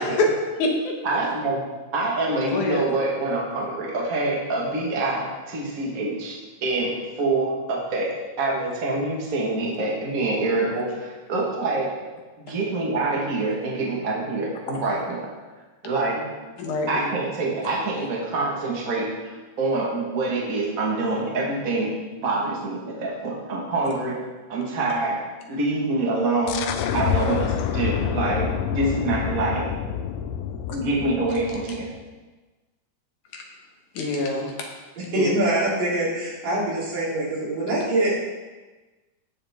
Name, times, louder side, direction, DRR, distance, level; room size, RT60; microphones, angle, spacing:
voice 1, 0.0-1.0 2.5-2.8 16.6-17.1 33.3-33.4 33.9-34.7 35.1-35.3, left 2 dB, 70° left, 1 dB, 2.5 m, -25 dB
voice 2, 1.0-1.6 1.9-11.9 12.4-15.3 15.8-16.2 16.9-24.2 24.5-25.2 25.5-26.7 26.9-29.6 30.7-31.9, right 2 dB, 45° right, -3 dB, 1.1 m, -26 dB
sound 1, 26.5-32.0, left 8 dB, 85° left, 1.6 m, -28 dB
voice 3, 35.0-38.2, right 1 dB, 75° right, -7 dB, 4.8 m, -24 dB
17.5 x 6.7 x 3.5 m, 1.2 s
omnidirectional pair, 3.9 m